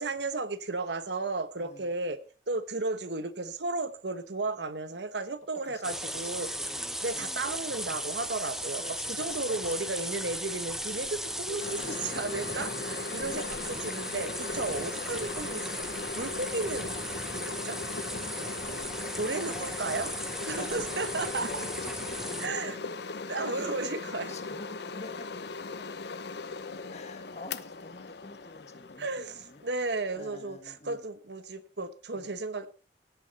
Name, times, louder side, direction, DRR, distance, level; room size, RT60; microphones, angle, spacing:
voice 1, 0.0-2.2 2.5-16.9 17.3-17.8 18.2-18.8 19.1-20.1 20.5-21.7 22.4-22.8 23.3-24.3 29.0-32.7, right 3 dB, 70° right, 12 dB, 1.1 m, -34 dB
voice 2, 1.6-1.9 5.6-7.4 8.8-9.8 11.5-12.0 13.1-14.2 14.5-15.8 18.9-19.7 20.6-22.9 23.5-23.6 24.2-25.4 25.8-26.2 26.9-29.6 30.1-31.0 32.1-32.4, left 2 dB, 40° left, 7 dB, 1.8 m, -48 dB
sound 1, 5.8-22.5, right 1 dB, 5° right, 0.9 m, -37 dB
sound 2, 11.6-30.1, left 4 dB, 65° left, 0.8 m, -39 dB
17.5 x 8.4 x 4.2 m, 0.37 s
head